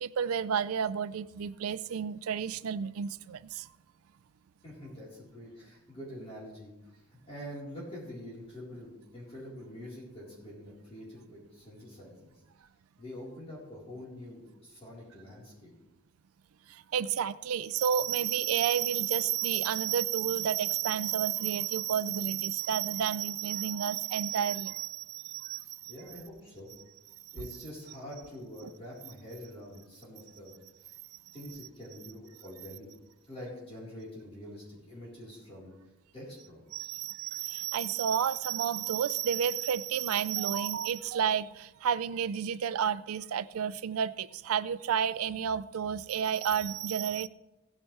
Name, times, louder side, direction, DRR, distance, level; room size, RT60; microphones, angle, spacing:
voice 1, 0.0-3.7 16.7-25.9 28.6-28.7 36.7-47.3, right 8 dB, 85° right, 15 dB, 0.4 m, -31 dB
voice 2, 4.6-12.3 13.0-15.7 25.6-26.7 27.3-30.6 31.3-32.9 33.2-35.7 36.1-36.9, left 1 dB, 30° left, -6 dB, 4.1 m, -45 dB
16.0 x 9.7 x 3.4 m, 1.0 s
head